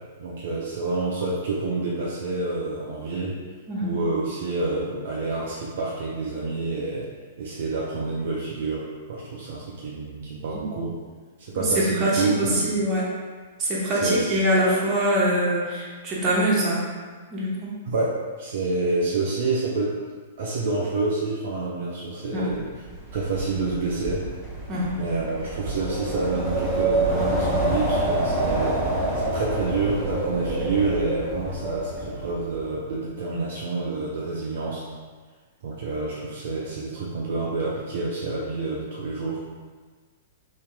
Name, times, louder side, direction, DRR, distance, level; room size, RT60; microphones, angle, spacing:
voice 1, 0.2-3.3 3.8-7.0 7.4-8.8 9.1-10.9 11.4-12.7 13.9-14.4 17.9-20.0 20.4-22.7 23.1-24.2 24.9-34.9 35.6-39.4, right 3 dB, 55° right, -5 dB, 0.5 m, -28 dB
voice 2, 11.5-13.0 13.6-16.8 17.3-17.7 22.3-22.4 24.7-24.9, right 1 dB, 25° right, -6 dB, 1.0 m, -23 dB
Wind, 22.5-32.6, right 2 dB, 5° right, 0.9 m, -27 dB
2.9 x 2.8 x 3.4 m, 1.5 s
figure-of-eight pair, 105°, 0 cm